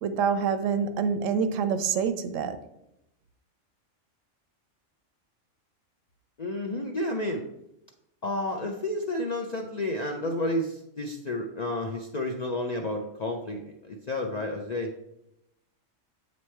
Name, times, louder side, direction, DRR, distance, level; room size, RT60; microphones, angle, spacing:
voice 1, 0.0-2.6, right 6 dB, 85° right, 11 dB, 0.9 m, -26 dB
voice 2, 6.4-7.4 8.2-14.9, left 1 dB, 60° left, 2 dB, 0.4 m, -31 dB
7.9 x 3.1 x 4.4 m, 0.86 s
omnidirectional pair, 1.3 m